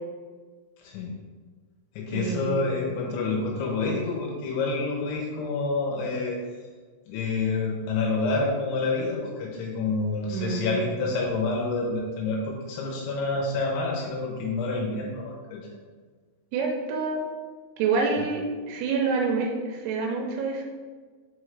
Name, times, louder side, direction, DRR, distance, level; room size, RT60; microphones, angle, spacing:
voice 1, 0.8-1.1 2.0-6.4 7.1-15.6 18.2-18.3, left 3 dB, 80° left, -1 dB, 3.0 m, -28 dB
voice 2, 2.1-2.6 10.3-10.7 16.5-17.2 17.8-20.6, right 4 dB, 80° right, 1 dB, 2.9 m, -27 dB
6.2 x 5.5 x 3.2 m, 1.5 s
omnidirectional pair, 5.8 m